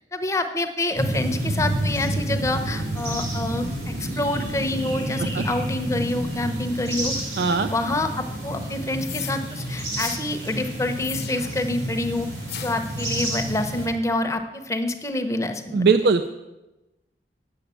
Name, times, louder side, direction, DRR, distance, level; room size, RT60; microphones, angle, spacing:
voice 1, 0.1-7.1 7.5-12.3 12.6-16.0, left 2 dB, 15° left, 6 dB, 0.7 m, -27 dB
sound 1, 1.0-13.9, right 1 dB, 80° right, 4.1 m, -29 dB
voice 2, 7.4-7.7 15.7-16.3, right 4 dB, 65° right, 9 dB, 0.4 m, -20 dB
sound 2, 9.0-9.4 10.0-10.2 11.0-11.6 12.5-12.9, left 11 dB, 70° left, 0.9 m, -36 dB
8.4 x 6.9 x 8.2 m, 1.0 s
head